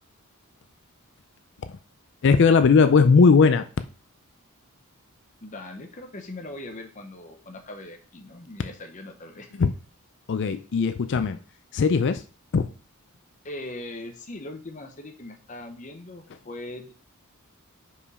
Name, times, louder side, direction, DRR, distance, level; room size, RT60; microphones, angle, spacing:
voice 1, 2.2-3.6 9.6-9.7 10.3-11.4 11.7-12.2 12.5-12.7, left 5 dB, 55° left, 0.4 m, -18 dB
voice 2, 5.4-9.5 13.4-16.9, left 2 dB, 35° left, 0.8 m, -40 dB
5.4 x 5.0 x 4.8 m
head